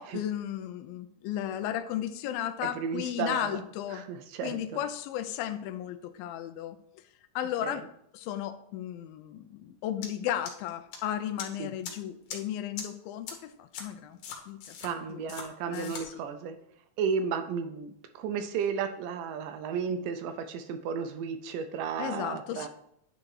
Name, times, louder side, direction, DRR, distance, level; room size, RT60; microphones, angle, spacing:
voice 1, 0.0-4.0 4.4-6.8 7.4-7.9 8.1-14.2 14.5-14.8 15.1-15.2 15.7-15.9 22.0-22.7, left 11 dB, 90° left, 11 dB, 2.4 m, -34 dB
voice 2, 2.6-3.6 3.9-4.6 7.6-7.8 11.6-11.7 14.8-16.6 17.0-22.7, right 6 dB, 80° right, 7 dB, 2.1 m, -33 dB
sound 1, 10.0-10.1 10.5-11.0 11.4-11.5 11.8-11.9 12.3-12.4 12.8-12.9 13.3-13.4 13.7-13.8 14.2-14.9 15.3-15.4 15.7-16.0, left 6 dB, 70° left, 2.6 m, -39 dB
9.6 x 3.8 x 4.7 m, 0.72 s
omnidirectional pair, 4.1 m